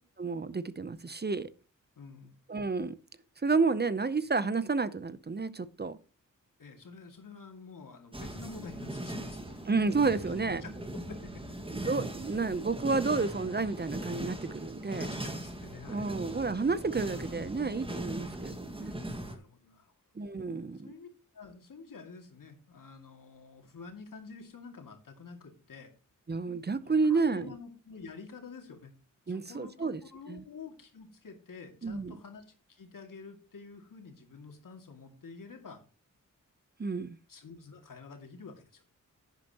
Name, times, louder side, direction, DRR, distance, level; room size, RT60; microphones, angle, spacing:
voice 1, 0.2-1.5 2.5-3.0 3.4-6.0 9.7-10.6 11.7-15.1 15.9-18.9 20.2-20.9 26.3-27.5 29.3-30.0 30.3-30.4 31.8-32.1 36.8-37.2, right 4 dB, 30° right, 0.7 m, -30 dB
voice 2, 2.0-2.3 6.6-9.6 10.4-11.6 14.9-16.1 19.3-19.9 20.8-21.1 21.3-25.9 26.8-28.9 29.3-35.8 37.3-38.8, left 4 dB, 80° left, 2.4 m, -48 dB
sound 1, 8.1-19.4, right 1 dB, 15° right, 1.8 m, -40 dB
10.5 x 9.1 x 3.0 m
wide cardioid pair, 70°, 32 cm